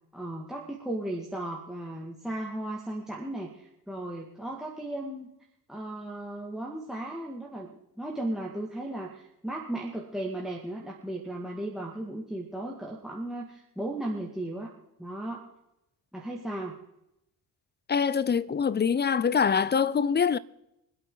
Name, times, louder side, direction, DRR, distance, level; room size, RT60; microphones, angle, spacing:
voice 1, 0.1-5.3 5.7-7.7 8.0-14.7 15.0-15.5 16.1-16.7, right 1 dB, ahead, 2.3 m, -36 dB
voice 2, 17.9-20.4, left 6 dB, 20° left, 0.7 m, -24 dB
25.5 x 8.6 x 4.0 m
hypercardioid pair, 50°, 48 cm